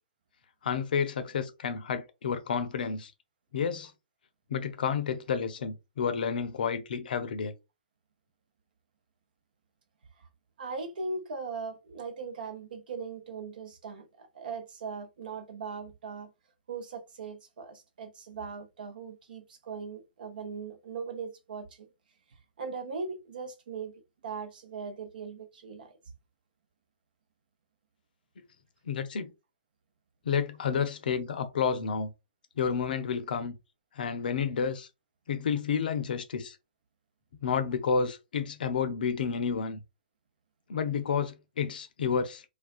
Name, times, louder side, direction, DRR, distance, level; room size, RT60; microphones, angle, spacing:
voice 1, 0.6-3.1 3.5-3.9 4.5-7.5 28.9-29.3 30.3-32.1 32.6-33.6 33.9-34.9 35.3-36.6 37.4-39.8 40.7-42.4, left 6 dB, 60° left, 0.5 m, -30 dB
voice 2, 10.6-16.3 16.7-21.9 22.6-25.9, right 4 dB, 65° right, 0.8 m, -39 dB
2.4 x 2.3 x 2.4 m
hypercardioid pair, 130°, 5 cm